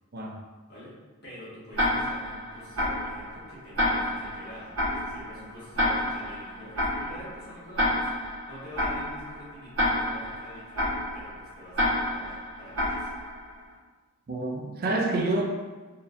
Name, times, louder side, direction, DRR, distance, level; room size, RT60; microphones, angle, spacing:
voice 1, 1.2-13.2, equal, 45° left, -9 dB, 1.4 m, -46 dB
Tick-tock, 1.7-13.6, left 1 dB, 70° right, 1.2 m, -30 dB
voice 2, 14.3-15.4, right 2 dB, 45° right, 0 dB, 0.4 m, -28 dB
4.0 x 2.7 x 2.5 m, 1.3 s
head